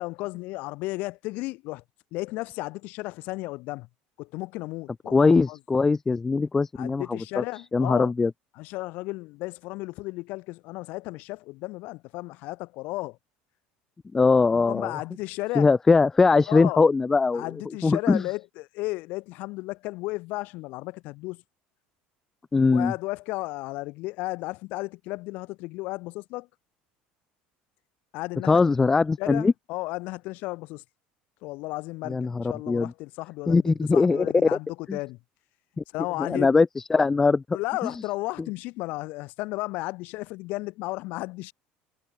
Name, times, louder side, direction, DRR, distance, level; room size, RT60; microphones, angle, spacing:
voice 1, 0.0-1.8 2.1-3.9 4.2-5.6 6.7-8.1 8.6-13.2 14.5-15.7 16.5-16.8 17.3-21.4 22.7-26.5 28.1-28.6 29.2-30.8 31.4-35.2 35.9-36.5 37.5-41.5, left 21 dB, 60° left, 7.4 m, -34 dB
voice 2, 5.1-7.0 7.7-8.3 14.1-14.9 15.6-17.4 17.8-18.2 22.5-22.9 28.5-29.5 32.1-32.9 33.5-34.3 34.9-35.0 35.8-35.9 36.2-37.4, left 4 dB, 10° left, 0.4 m, -21 dB
cardioid pair, 165°, 3 cm